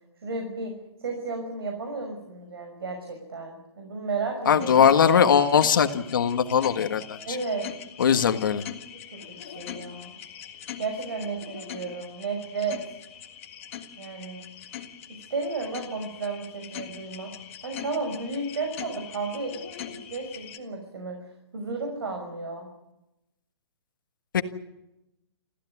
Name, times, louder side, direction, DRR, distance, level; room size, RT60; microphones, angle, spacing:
voice 1, 0.2-0.7 1.0-4.7 7.3-7.7 8.1-8.2 9.1-10.1 10.8-13.0 14.0-14.4 15.1-17.3 17.6-19.6 19.9-22.7, right 3 dB, 60° right, 3 dB, 6.0 m, -33 dB
voice 2, 4.4-7.4 8.0-8.6 24.3-24.4, left 7 dB, 50° left, 7 dB, 1.6 m, -20 dB
sound 1, 4.6-20.6, left 9 dB, 30° left, 1.8 m, -42 dB
25.0 x 15.5 x 9.6 m, 0.92 s
hypercardioid pair, 180°, 14 cm